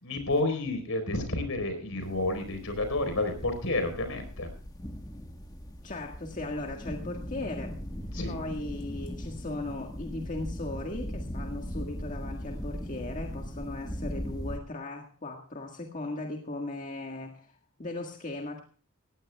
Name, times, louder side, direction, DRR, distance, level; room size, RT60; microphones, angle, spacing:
voice 1, 0.0-4.5 8.1-8.4, left 2 dB, 75° left, 8 dB, 4.4 m, -30 dB
sound 1, 2.0-14.6, equal, 20° left, 1.5 m, -39 dB
voice 2, 5.8-7.8 8.3-17.5 17.8-18.6, left 2 dB, 35° left, 2 dB, 1.7 m, -37 dB
19.0 x 16.0 x 2.3 m, 0.40 s
head